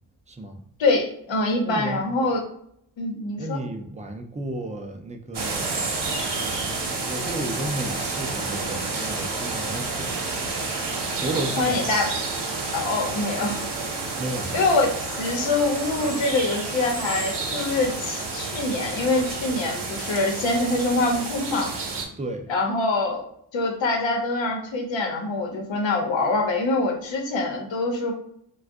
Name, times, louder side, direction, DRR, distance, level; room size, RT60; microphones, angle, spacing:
voice 1, 0.3-0.6 1.6-2.0 3.4-5.8 7.1-10.3 10.6-11.9 14.2-14.7 22.2-22.5, right 2 dB, 15° right, 0.4 m, -33 dB
voice 2, 0.8-2.4 3.0-3.6 11.6-12.1 12.7-13.7 14.5-21.7 22.5-23.3 23.5-28.1, left 2 dB, 75° left, 0.9 m, -24 dB
sound 1, 5.3-22.1, right 3 dB, 60° right, 0.9 m, -30 dB
2.5 x 2.3 x 3.5 m
cardioid pair, 65°, 46 cm